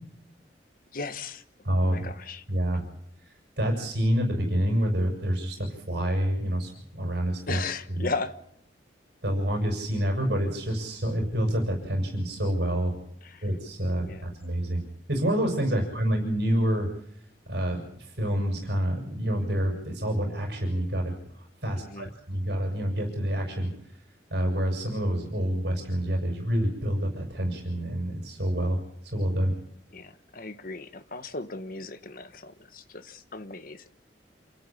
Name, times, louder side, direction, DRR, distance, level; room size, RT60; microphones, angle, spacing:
voice 1, 0.9-1.4 1.8-2.4 7.5-8.4 13.2-13.5 14.0-14.3 15.7-15.8 21.8-22.1 29.9-33.9, left 3 dB, 55° left, 1.5 m, -37 dB
voice 2, 1.6-2.0 2.5-2.8 3.3-7.6 7.9-8.1 9.2-13.0 13.4-14.8 15.1-16.9 17.5-21.1 21.6-23.7 24.3-29.5, equal, 65° right, 6.6 m, -27 dB
28.5 x 13.0 x 8.6 m
head